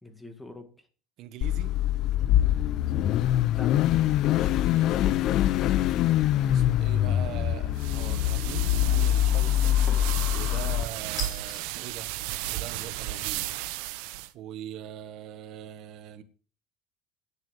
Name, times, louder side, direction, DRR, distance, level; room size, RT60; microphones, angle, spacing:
voice 1, 0.0-0.9 2.7-3.9, left 1 dB, 5° left, 1.8 m, -47 dB
voice 2, 1.2-1.7 4.3-5.0 6.5-9.8 10.3-12.1 12.5-13.5 14.3-16.2, right 11 dB, 50° right, 1.5 m, -42 dB
Car / Idling / Accelerating revving vroom, 1.4-10.8, left 12 dB, 50° left, 0.6 m, -24 dB
sound 1, 5.1-5.3 5.8-6.3 8.0-8.5 9.9-10.2 11.2-11.7, left 4 dB, 35° left, 5.2 m, -41 dB
sound 2, 7.8-14.3, right 15 dB, 85° right, 0.9 m, -34 dB
11.0 x 7.2 x 8.0 m
cardioid pair, 170°, 0 cm